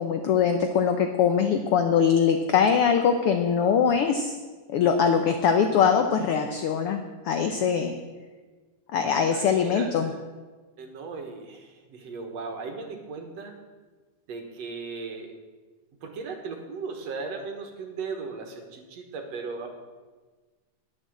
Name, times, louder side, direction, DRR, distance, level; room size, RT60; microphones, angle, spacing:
voice 1, 0.0-4.4 4.7-7.9 8.9-10.1, left 7 dB, 85° left, 6 dB, 1.2 m, -22 dB
voice 2, 9.3-10.2 10.8-13.6 14.3-15.3 16.0-19.7, right 4 dB, 60° right, 4 dB, 2.4 m, -37 dB
10.0 x 9.0 x 7.5 m, 1.3 s
omnidirectional pair, 3.5 m